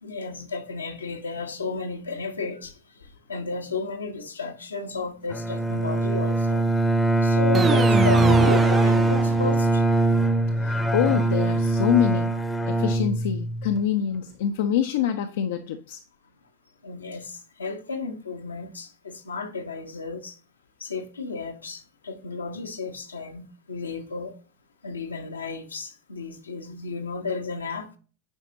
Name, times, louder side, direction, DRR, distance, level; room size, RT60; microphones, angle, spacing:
voice 1, 0.0-6.6 7.2-9.8 16.8-20.4 20.8-24.4 24.8-27.9, left 4 dB, 75° left, 1.1 m, -33 dB
Bowed string instrument, 5.3-13.8, right 2 dB, 10° left, 0.8 m, -22 dB
sound 1, 7.5-9.9, right 6 dB, 25° right, 0.5 m, -27 dB
voice 2, 10.5-12.3 12.7-16.0, left 9 dB, 55° left, 0.6 m, -25 dB
8.9 x 5.0 x 2.7 m
figure-of-eight pair, 90°, 0 cm